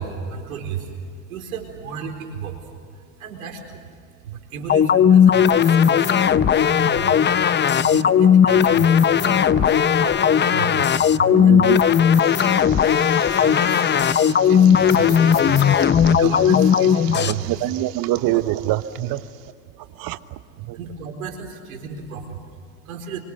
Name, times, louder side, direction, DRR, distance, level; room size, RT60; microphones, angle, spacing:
voice 1, 0.0-11.7 12.3-17.5 18.3-18.4 19.8-20.1 20.6-23.2, right 5 dB, 90° right, 4 dB, 4.5 m, -34 dB
More Food Please, 4.7-17.3, left 8 dB, 25° left, 0.9 m, -16 dB
voice 2, 11.3-11.8 17.3-19.3 19.8-20.8, right 16 dB, 55° right, 13 dB, 1.3 m, -25 dB
sound 1, 12.2-19.5, right 15 dB, 75° right, 2.1 m, -41 dB
26.5 x 25.5 x 6.7 m, 2.3 s
supercardioid pair, 95°, 41 cm